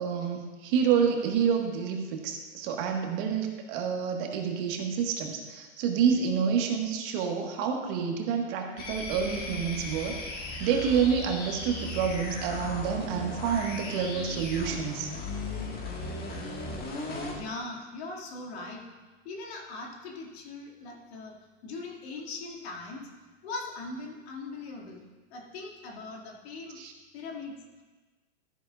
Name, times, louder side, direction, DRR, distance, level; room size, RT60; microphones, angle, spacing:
voice 1, 0.0-15.1 26.8-26.9, right 7 dB, 50° right, 2 dB, 1.7 m, -28 dB
sound 1, 8.8-17.4, left 2 dB, 25° left, 1.8 m, -37 dB
voice 2, 17.3-18.8 19.2-21.3 21.6-23.1 23.4-25.0 25.3-26.8 27.1-27.5, left 3 dB, 60° left, -1 dB, 2.5 m, -40 dB
14.0 x 9.2 x 2.5 m, 1.3 s
hypercardioid pair, 120°, 36 cm